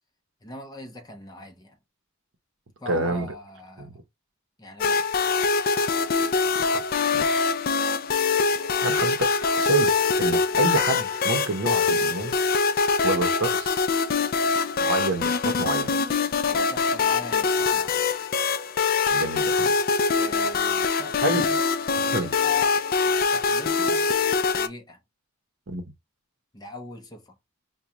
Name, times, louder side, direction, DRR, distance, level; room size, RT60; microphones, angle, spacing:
voice 1, 0.4-1.8 2.8-4.0 4.6-5.1 16.5-18.1 20.1-21.6 22.0-22.7 23.2-24.1 24.4-25.0 26.5-27.4, left 2 dB, 20° left, 0.7 m, -40 dB
voice 2, 2.9-3.3 3.8-3.9 6.7-6.8 7.1-7.5 8.8-12.4 13.0-13.8 14.9-16.0 19.1-19.8 21.2-21.5 22.1-22.3 25.7-25.8, right 3 dB, 60° right, 0.7 m, -28 dB
sound 1, 4.8-24.7, left 5 dB, 40° left, 0.3 m, -23 dB
4.9 x 2.2 x 2.9 m
head